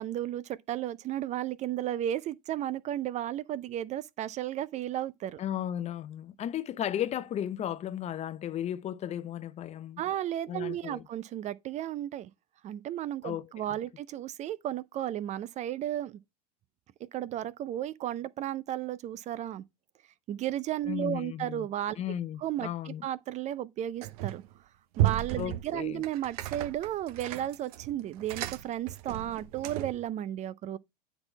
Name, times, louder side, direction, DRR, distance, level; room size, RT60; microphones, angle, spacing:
voice 1, 0.0-5.4 10.0-12.3 12.6-16.2 17.1-19.6 20.3-22.0 22.4-24.4 25.0-30.8, right 12 dB, 35° right, 0.5 m, -34 dB
voice 2, 5.4-10.0 10.5-11.0 13.2-13.5 20.9-21.7 22.0-23.1 25.4-26.0, left 10 dB, 30° left, 0.7 m, -35 dB
sound 1, 24.0-24.5 24.9-30.1, right 14 dB, 65° right, 0.8 m, -34 dB
9.6 x 4.1 x 4.4 m
hypercardioid pair, 90°, 21 cm